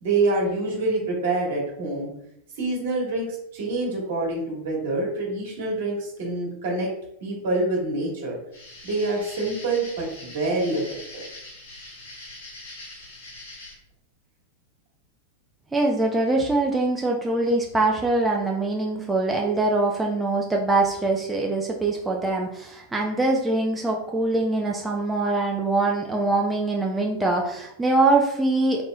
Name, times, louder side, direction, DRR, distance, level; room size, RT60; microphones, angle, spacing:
voice 1, 0.0-2.1 2.5-6.9 7.2-8.4 8.8-10.8 11.1-11.2, right 2 dB, 60° right, -4 dB, 1.4 m, -26 dB
sound 1, 8.5-13.7, left 2 dB, 70° left, 1.2 m, -42 dB
voice 2, 15.7-28.8, right 2 dB, 10° right, -1 dB, 0.4 m, -23 dB
3.0 x 2.8 x 2.3 m, 0.78 s
figure-of-eight pair, 95°, 0 cm